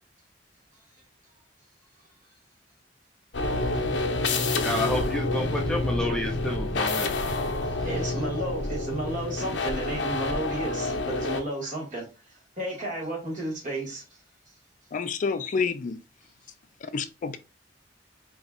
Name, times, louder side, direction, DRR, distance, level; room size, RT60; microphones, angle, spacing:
sound 1, 3.3-11.4, left 2 dB, 80° left, 0.8 m, -28 dB
voice 1, 4.6-7.1, left 1 dB, 5° left, 0.6 m, -30 dB
voice 2, 7.6-14.2, right 1 dB, 45° right, 2.0 m, -33 dB
voice 3, 14.9-16.0 16.9-17.4, left 5 dB, 45° left, 0.4 m, -28 dB
4.9 x 3.1 x 2.4 m
head